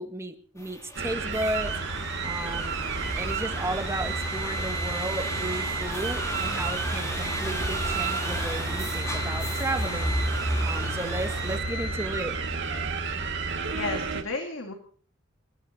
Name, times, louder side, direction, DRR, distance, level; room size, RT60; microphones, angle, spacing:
voice 1, 0.0-1.7 2.2-2.8 3.1-10.2 10.6-12.4, right 1 dB, 15° right, 6 dB, 1.8 m, -34 dB
sound 1, 0.6-11.6, equal, 15° left, 5.1 m, -34 dB
sound 2, 0.9-14.2, right 4 dB, 60° right, 2.5 m, -31 dB
sound 3, 2.4-12.4, right 2 dB, 80° right, 3.7 m, -45 dB
voice 2, 13.7-14.7, left 2 dB, 70° left, 3 dB, 2.6 m, -32 dB
30.0 x 15.5 x 2.8 m, 0.43 s
head